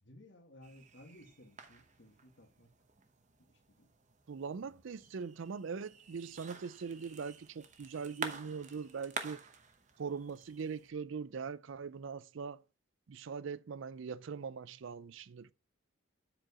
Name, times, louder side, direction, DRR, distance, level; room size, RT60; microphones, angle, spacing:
voice 1, 0.0-2.7 3.4-3.9 4.7-4.8, left 1 dB, 60° left, 1.8 m, -58 dB
sound 1, 0.6-10.9, right 4 dB, 35° right, 0.9 m, -49 dB
voice 2, 4.3-9.4 10.0-12.6 13.1-15.5, right 5 dB, 65° right, 0.4 m, -41 dB
7.6 x 4.8 x 4.9 m
head